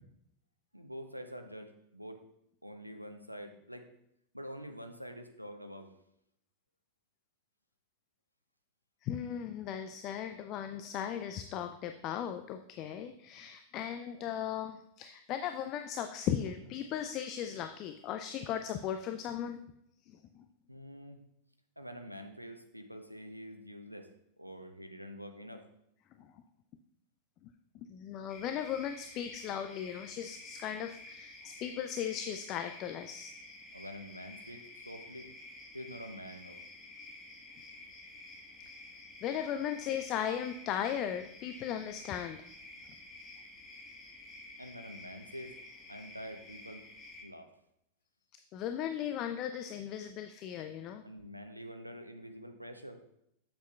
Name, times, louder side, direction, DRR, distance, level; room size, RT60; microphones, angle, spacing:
voice 1, 0.7-2.2 2.6-3.9 4.3-5.9 20.7-21.2 21.8-24.1 24.4-25.7 33.7-35.3 35.7-36.6 44.6-45.6 45.9-46.9 47.2-47.5 51.0-53.0, equal, 90° right, 7 dB, 0.5 m, -46 dB
voice 2, 9.0-19.6 20.1-20.5 26.2-26.3 27.9-33.3 39.2-42.4 48.5-51.0, left 9 dB, 40° left, 8 dB, 0.3 m, -37 dB
sound 1, 28.3-47.2, left 2 dB, 20° left, 1.2 m, -51 dB
7.4 x 7.1 x 2.3 m, 0.77 s
figure-of-eight pair, 90°, 0 cm